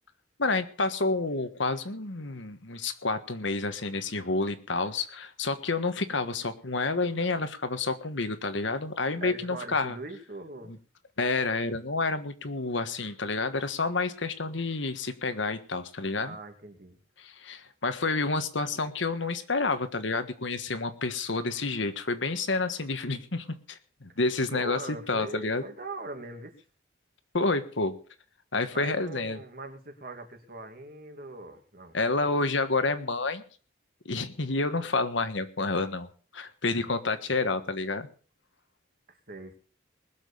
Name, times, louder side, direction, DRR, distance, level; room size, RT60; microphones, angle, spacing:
voice 1, 0.4-10.0 10.7-10.8 11.2-16.4 17.2-24.8 25.1-25.6 27.3-27.9 28.5-29.4 31.9-33.4 34.0-36.1 36.3-38.1, left 3 dB, 70° left, 10 dB, 1.5 m, -29 dB
voice 2, 9.2-10.8 16.2-17.0 24.5-26.5 28.7-32.0 39.1-39.6, right 2 dB, 50° right, 5 dB, 2.5 m, -41 dB
20.5 x 7.3 x 7.0 m, 0.42 s
head